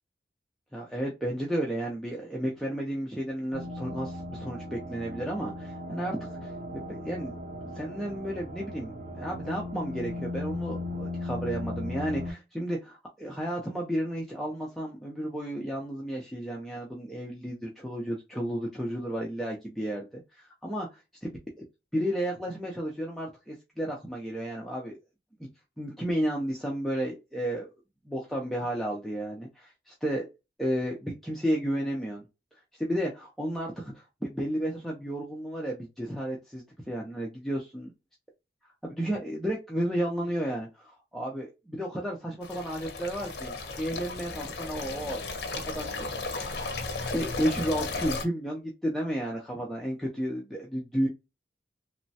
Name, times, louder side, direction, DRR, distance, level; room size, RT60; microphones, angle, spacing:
voice 1, 0.7-7.3 7.6-21.3 21.9-25.0 25.4-25.5 25.8-27.7 28.1-30.3 30.6-32.2 32.7-37.9 38.8-46.1 47.1-51.1, equal, ahead, -3 dB, 0.4 m, -32 dB
sound 1, 3.5-12.3, left 1 dB, 50° right, 0.9 m, -37 dB
sound 2, 42.4-48.3, left 3 dB, 65° left, 0.6 m, -35 dB
3.0 x 2.1 x 2.7 m, 0.25 s
head